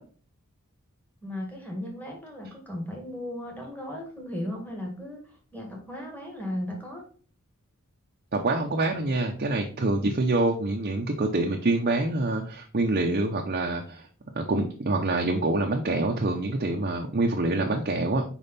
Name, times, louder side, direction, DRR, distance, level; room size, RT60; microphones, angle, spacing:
voice 1, 1.2-7.0, left 1 dB, 5° left, 0 dB, 1.7 m, -36 dB
voice 2, 8.3-14.0 14.4-18.2, right 2 dB, 40° right, 1 dB, 0.7 m, -26 dB
5.3 x 4.9 x 4.1 m, 0.41 s
head